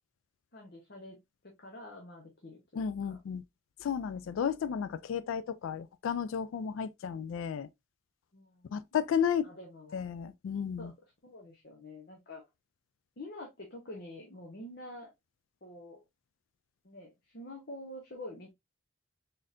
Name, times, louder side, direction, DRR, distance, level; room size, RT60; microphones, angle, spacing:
voice 1, 0.5-1.2 1.4-2.9 8.3-8.7 9.4-10.0 10.8-10.9 11.2-12.4 13.2-15.1 15.6-16.0 16.8-18.5, left 1 dB, 50° left, 1.0 m, -47 dB
voice 2, 2.8-3.4 3.8-7.7 8.7-9.5 9.9-10.9, left 7 dB, 75° left, 0.3 m, -33 dB
4.1 x 3.8 x 2.5 m
head